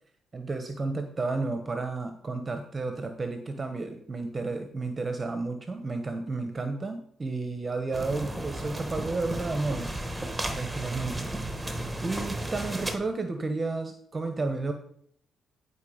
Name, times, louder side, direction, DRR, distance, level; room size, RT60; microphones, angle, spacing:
voice 1, 0.3-9.9 10.5-11.3 12.0-14.7, right 3 dB, 30° right, 7 dB, 1.1 m, -32 dB
sound 1, 7.9-12.9, right 1 dB, 10° right, 1.4 m, -34 dB
11.5 x 4.6 x 5.1 m, 0.63 s
cardioid pair, 90°, 0 cm